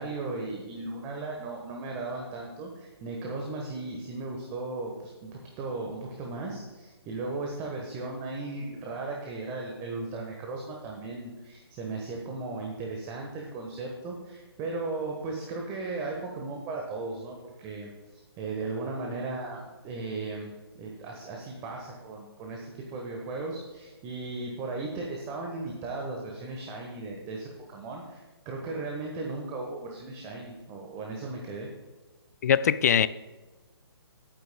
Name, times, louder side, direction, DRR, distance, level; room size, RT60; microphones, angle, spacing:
voice 1, 0.0-20.5 20.8-31.7, right 3 dB, 20° right, 1.2 m, -36 dB
voice 2, 32.4-33.1, left 8 dB, 40° left, 0.3 m, -21 dB
18.5 x 8.9 x 2.3 m
figure-of-eight pair, 135°, 13 cm